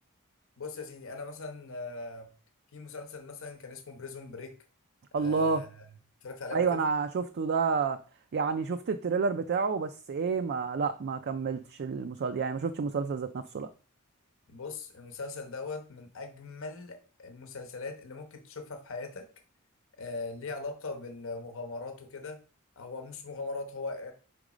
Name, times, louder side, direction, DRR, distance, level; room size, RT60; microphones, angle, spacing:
voice 1, 0.6-2.3 2.7-4.5 5.2-5.8 6.2-6.8 14.5-19.3 20.0-22.4 22.8-24.1, left 3 dB, 65° left, 1.0 m, -40 dB
voice 2, 5.1-5.6 6.5-8.0 8.3-13.7, right 5 dB, 50° right, 0.4 m, -29 dB
5.2 x 4.0 x 4.9 m
head